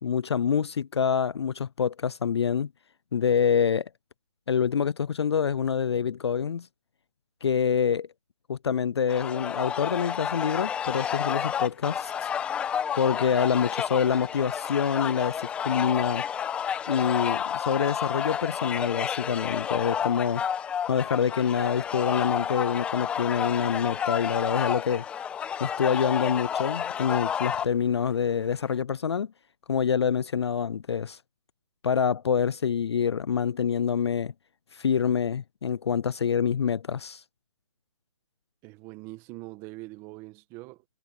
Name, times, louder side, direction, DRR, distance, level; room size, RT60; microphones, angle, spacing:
voice 1, 0.0-2.7 3.1-3.9 4.5-6.7 7.4-8.1 8.5-12.1 12.9-16.2 16.9-20.4 20.9-25.0 25.6-29.3 29.7-31.2 31.8-34.3 34.7-37.2, left 7 dB, 50° left, 0.5 m, -26 dB
sound 1, 9.1-27.7, left 8 dB, 5° left, 1.0 m, -30 dB
voice 2, 38.6-40.8, right 21 dB, 15° right, 1.5 m, -43 dB
hypercardioid pair, 160°, 18 cm